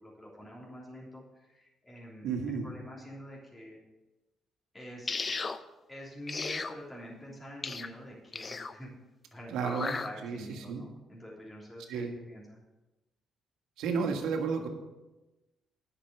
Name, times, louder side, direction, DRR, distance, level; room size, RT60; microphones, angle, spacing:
voice 1, 0.0-2.3 2.6-3.8 4.7-5.2 5.9-8.9 9.3-9.7 10.0-12.6, equal, 15° left, -4 dB, 3.2 m, -46 dB
voice 2, 2.2-2.7 9.5-9.9 10.2-10.4 10.7-10.8 11.9-12.1 13.8-14.7, right 5 dB, 85° right, 3 dB, 1.6 m, -32 dB
sound 1, 5.1-5.6 6.3-6.7 7.6-7.9 8.3-8.7 9.6-10.1, left 4 dB, 35° left, 0.6 m, -35 dB
10.0 x 6.1 x 7.9 m, 1.1 s
cardioid pair, 90°, 0 cm